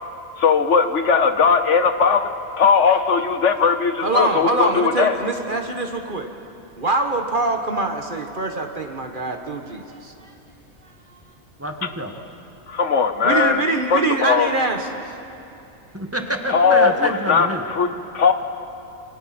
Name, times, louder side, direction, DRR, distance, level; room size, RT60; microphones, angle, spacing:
voice 1, 0.4-2.3 2.6-5.1 12.7-13.6 13.9-14.5 16.5-17.9 18.1-18.3, left 5 dB, 65° left, 9 dB, 1.1 m, -18 dB
voice 2, 4.0-6.3 6.8-10.1 13.2-15.0, right 2 dB, 40° right, 4 dB, 1.4 m, -24 dB
voice 3, 11.6-12.1 15.9-17.6, equal, 10° right, 3 dB, 1.5 m, -27 dB
27.0 x 27.0 x 4.3 m, 2.8 s
omnidirectional pair, 1.4 m